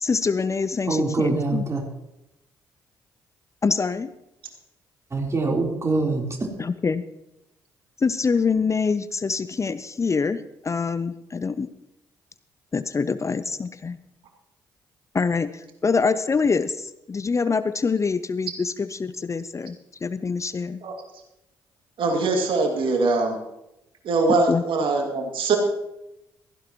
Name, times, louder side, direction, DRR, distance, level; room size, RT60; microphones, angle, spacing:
voice 1, 0.0-1.7 3.6-4.1 6.6-7.0 8.0-11.7 12.7-14.0 15.1-20.8 24.3-24.6, left 5 dB, 30° left, 14 dB, 0.6 m, -25 dB
voice 2, 0.9-1.8 5.1-6.2, right 3 dB, 30° right, -1 dB, 3.9 m, -24 dB
voice 3, 22.0-23.4 24.0-25.6, right 3 dB, 60° right, 2 dB, 2.4 m, -22 dB
16.0 x 15.0 x 3.1 m, 0.88 s
hypercardioid pair, 45°, 10 cm